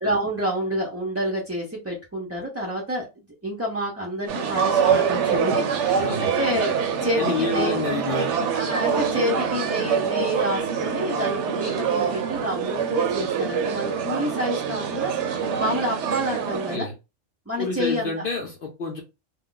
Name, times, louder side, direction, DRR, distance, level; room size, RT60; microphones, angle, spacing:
voice 1, 0.0-3.1 3.4-7.8 8.5-16.9 17.5-18.1, equal, 25° right, 0.3 m, -28 dB
sound 1, 4.3-16.8, right 7 dB, 70° right, 0.8 m, -25 dB
voice 2, 5.9-6.4 7.2-8.4 16.5-16.9 17.6-19.0, left 3 dB, 60° left, 0.6 m, -29 dB
2.4 x 2.1 x 3.7 m
omnidirectional pair, 1.4 m